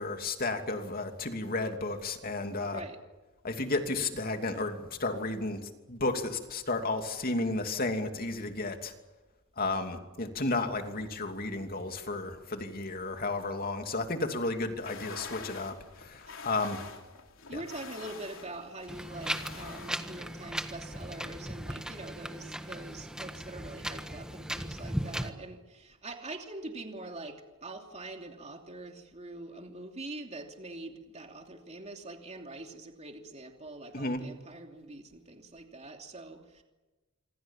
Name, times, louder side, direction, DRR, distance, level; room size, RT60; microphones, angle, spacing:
voice 1, 0.0-2.8 3.4-5.6 5.9-8.9 9.6-16.8 17.5-17.6 33.9-34.2, left 2 dB, 45° left, 5 dB, 2.8 m, -33 dB
sound 1, 14.7-19.9, left 4 dB, 75° left, 3.3 m, -46 dB
voice 2, 17.5-36.6, right 2 dB, 35° right, 3 dB, 2.9 m, -44 dB
Wind, 18.9-25.3, equal, 5° right, 1.5 m, -37 dB
27.0 x 25.5 x 7.4 m, 1.1 s
head